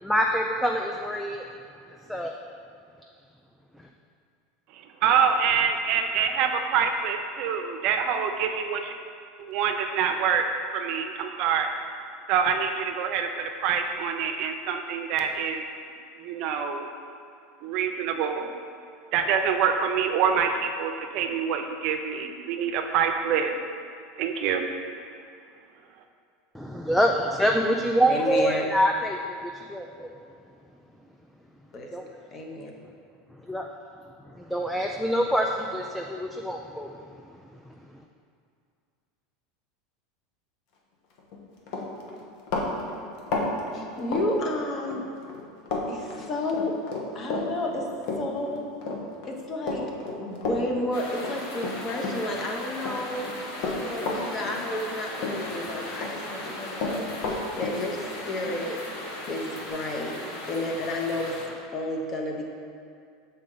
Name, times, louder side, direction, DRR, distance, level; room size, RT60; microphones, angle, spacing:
voice 1, 0.0-1.4 1.9-2.3 26.5-30.2 31.9-32.1 33.3-33.7 34.3-37.0 37.5-37.6, equal, ahead, 1 dB, 0.3 m, -26 dB
voice 2, 5.0-9.0 9.5-10.5 10.7-11.7 12.3-15.6 16.2-16.9 17.6-18.5 19.1-23.5 24.2-24.7, right 7 dB, 55° right, 5 dB, 0.5 m, -26 dB
voice 3, 28.1-28.6 31.7-31.9 32.3-32.7 43.7-45.0 45.9-46.7 47.1-47.9 48.2-48.7 49.3-49.8 50.2-53.3 53.6-58.0 58.2-58.8 59.3-60.2 60.5-61.3 61.7-62.4, left 1 dB, 30° left, 1 dB, 0.8 m, -31 dB
Run, 41.2-41.4 41.7-45.0 45.3-45.9 46.1-52.5 52.8-54.9 55.2-56.1 56.4-59.7, left 3 dB, 60° left, 0.9 m, -32 dB
sound 1, 50.9-61.5, left 1 dB, 80° left, 1.1 m, -38 dB
6.4 x 4.2 x 3.8 m, 2.3 s
supercardioid pair, 130°, 0 cm